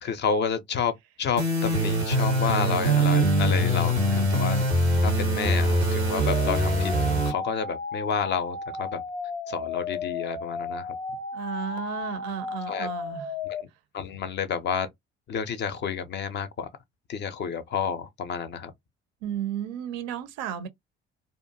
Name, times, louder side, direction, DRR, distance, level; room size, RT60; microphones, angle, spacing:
voice 1, 0.0-4.6 5.0-9.0 9.5-10.9 12.7-12.9 13.4-13.6 13.9-14.9 15.3-16.7 17.1-18.7, left 6 dB, 35° left, 0.5 m, -30 dB
sound 1, 1.4-7.3, right 1 dB, 90° right, 0.7 m, -23 dB
sound 2, 6.3-13.6, left 4 dB, 85° left, 0.5 m, -34 dB
voice 2, 11.3-13.3 19.2-20.7, right 10 dB, 55° right, 0.5 m, -33 dB
2.5 x 2.2 x 2.7 m
figure-of-eight pair, 50°, 32 cm